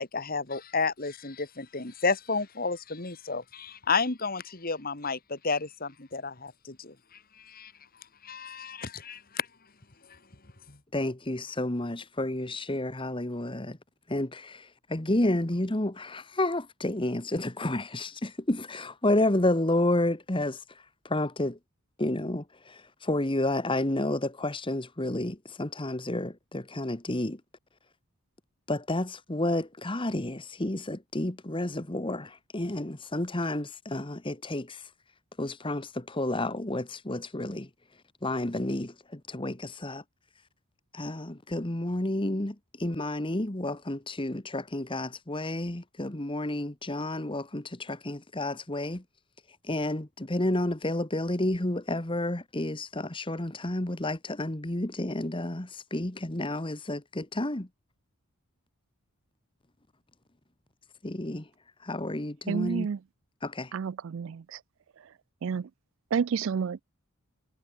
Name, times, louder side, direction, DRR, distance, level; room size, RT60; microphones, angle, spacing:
voice 1, 0.0-6.9 7.4-7.7 8.2-9.5 10.7-10.8, left 4 dB, 40° left, 1.9 m, -31 dB
voice 2, 10.9-13.8 14.1-21.6 22.0-27.4 28.7-34.9 35.4-37.7 38.2-40.0 40.9-49.0 49.6-57.7 61.0-61.5 61.8-62.9 63.4-63.7, left 1 dB, 20° left, 1.3 m, -30 dB
voice 3, 62.5-63.0 63.7-64.4 65.4-65.7 66.1-66.8, right 6 dB, 60° right, 0.4 m, -29 dB
head